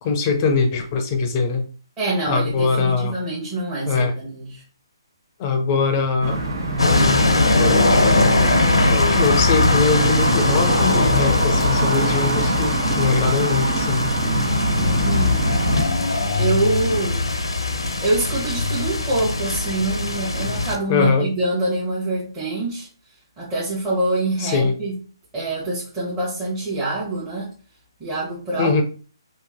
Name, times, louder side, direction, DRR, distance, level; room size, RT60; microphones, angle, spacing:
voice 1, 0.0-1.7 2.3-3.2 3.9-4.1 5.4-6.4 6.8-8.1 8.7-14.0 20.9-21.3 24.4-24.7 28.6-28.8, left 4 dB, 30° left, 6 dB, 0.7 m, -22 dB
voice 2, 2.0-4.6 14.8-15.5 16.4-17.3 18.0-22.9 23.4-24.9 25.3-27.5 28.0-28.8, right 2 dB, 15° right, -9 dB, 1.1 m, -25 dB
sound 1, 6.2-15.8, right 2 dB, 50° right, 1.2 m, -25 dB
sound 2, 6.8-20.8, left 2 dB, 85° left, 0.8 m, -20 dB
3.0 x 2.6 x 3.6 m, 0.39 s
hypercardioid pair, 145°, 3 cm